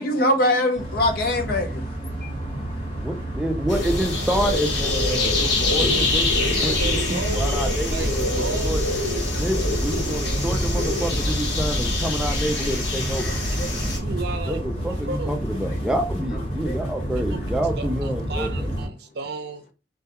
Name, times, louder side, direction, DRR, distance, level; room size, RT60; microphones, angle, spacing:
voice 1, 0.0-3.1 5.3-5.6 13.3-14.1 15.7-15.8 16.6-16.7, left 1 dB, 55° left, 0.5 m, -25 dB
sound 1, 0.7-18.9, right 1 dB, 35° left, 1.2 m, -30 dB
voice 2, 3.0-8.8 9.4-13.3 14.5-18.7, right 1 dB, 5° right, 0.3 m, -28 dB
sound 2, 3.7-14.0, left 2 dB, 70° left, 0.9 m, -24 dB
voice 3, 5.9-7.5 7.9-8.8 11.7-12.3 13.1-13.2 13.8-14.6 15.1-15.3 17.3-17.4 17.8-19.7, right 3 dB, 65° right, 0.5 m, -34 dB
2.2 x 2.2 x 2.8 m
head